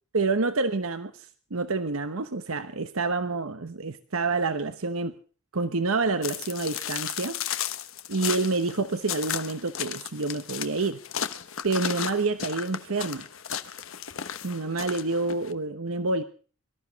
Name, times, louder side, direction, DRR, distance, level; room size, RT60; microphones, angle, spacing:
voice 1, 0.1-5.1 5.5-7.4 8.1-11.0 11.6-13.3 14.4-16.2, right 3 dB, 80° right, 10 dB, 1.1 m, -28 dB
sound 1, 6.2-15.5, left 9 dB, 70° left, 1.1 m, -34 dB
24.0 x 13.5 x 4.1 m, 0.41 s
head